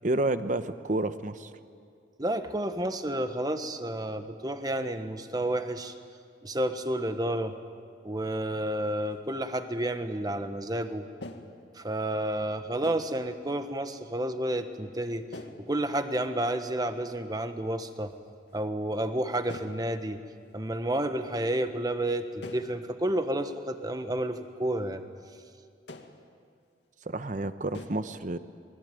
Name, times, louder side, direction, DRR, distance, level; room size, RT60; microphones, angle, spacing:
voice 1, 0.0-1.5 27.0-28.4, right 2 dB, 45° right, 11 dB, 1.0 m, -30 dB
voice 2, 2.2-5.9 6.4-7.5 8.0-11.1 11.8-15.2 15.7-18.1 18.5-20.2 20.5-25.0, right 1 dB, 20° right, 8 dB, 1.3 m, -30 dB
sound 1, 8.5-8.7 9.1-9.4 11.2-11.6 12.8-13.2 15.3-15.7 16.8-16.9 17.3-17.7 18.0-18.1 18.5-18.9 19.5-19.8 22.4-22.8 23.2-23.3 23.9-24.0 25.9-26.2 27.7-27.9, left 1 dB, 75° left, 2.0 m, -44 dB
27.0 x 21.0 x 9.3 m, 2.2 s
head